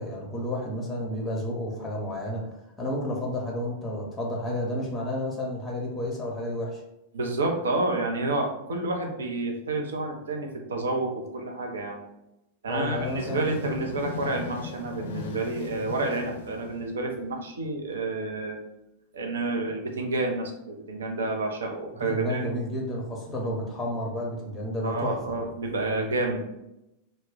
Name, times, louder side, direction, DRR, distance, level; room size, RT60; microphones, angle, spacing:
voice 1, 0.0-2.5 2.8-6.8 12.7-13.5 22.1-25.3, left 1 dB, 15° left, -1 dB, 0.6 m, -31 dB
voice 2, 7.1-12.0 12.6-18.6 19.1-22.4 24.8-26.4, right 2 dB, 65° right, 2 dB, 0.5 m, -29 dB
sound 1, 12.7-17.3, left 5 dB, 60° left, 0.4 m, -38 dB
2.2 x 2.0 x 3.6 m, 0.88 s
figure-of-eight pair, 90°, 0 cm